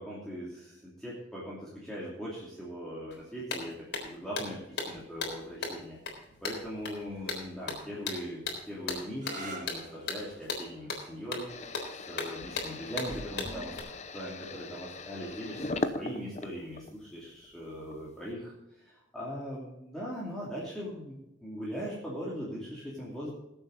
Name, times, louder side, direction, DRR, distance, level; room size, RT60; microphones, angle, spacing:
voice 1, 0.0-11.8 12.1-13.7 14.1-21.1 21.4-23.3, equal, 5° left, -7 dB, 2.8 m, -40 dB
sound 1, 3.1-3.2 3.5-13.8, left 4 dB, 70° left, 3.7 m, -37 dB
sound 2, 9.1-16.6 17.6-18.1 21.6-22.0, right 2 dB, 40° right, 2.4 m, -51 dB
sound 3, 11.5-17.0 17.4-18.2, left 2 dB, 35° left, 0.8 m, -39 dB
20.0 x 7.9 x 4.1 m, 0.94 s
head